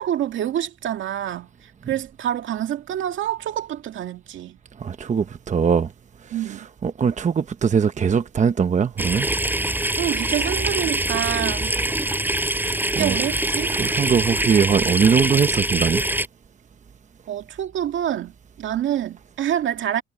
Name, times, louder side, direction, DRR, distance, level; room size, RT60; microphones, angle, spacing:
voice 1, 0.0-1.5 1.9-4.6 6.3-6.7 10.0-11.7 13.0-13.7 17.3-18.3 18.6-20.0, right 11 dB, 75° right, 2.2 m, -26 dB
voice 2, 4.8-5.9 6.2-9.3 12.6-13.2 13.7-16.0, right 6 dB, 35° right, 1.0 m, -21 dB
sound 1, 9.0-16.3, right 1 dB, 10° right, 6.8 m, -24 dB
cardioid pair, 90°, 20 cm